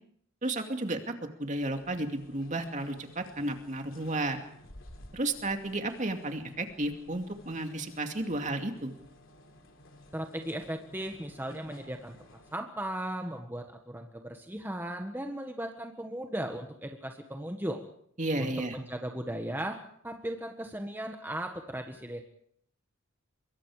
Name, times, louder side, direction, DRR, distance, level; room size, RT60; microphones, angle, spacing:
voice 1, 0.4-1.1 1.4-4.4 5.1-9.0 18.2-18.7, right 2 dB, 35° right, 5 dB, 2.4 m, -33 dB
sound 1, 1.6-12.5, left 1 dB, 70° left, 3.5 m, -55 dB
voice 2, 10.1-12.1 12.5-17.8 18.4-19.8 20.0-22.2, right 1 dB, 10° right, 3 dB, 1.5 m, -37 dB
25.0 x 23.0 x 5.0 m, 0.66 s
head